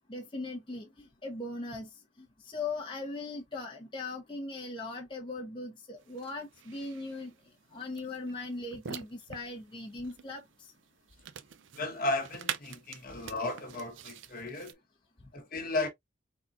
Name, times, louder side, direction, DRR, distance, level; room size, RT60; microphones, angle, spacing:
voice 1, 0.1-0.9 1.2-7.3 7.7-10.4, left 3 dB, 25° left, 1.0 m, -39 dB
sound 1, 6.0-14.7, right 8 dB, 70° right, 0.5 m, -46 dB
voice 2, 11.7-14.8 15.3-15.9, left 2 dB, 45° left, 1.3 m, -34 dB
4.1 x 4.1 x 2.5 m
head